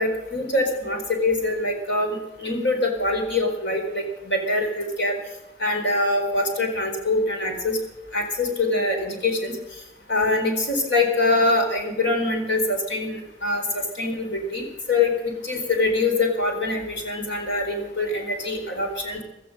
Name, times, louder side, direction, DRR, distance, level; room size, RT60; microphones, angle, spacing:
voice 1, 0.0-2.1 2.4-5.2 5.6-7.8 8.1-9.6 10.1-19.2, left 2 dB, 60° left, 3 dB, 4.3 m, -24 dB
16.5 x 13.5 x 6.6 m, 0.99 s
head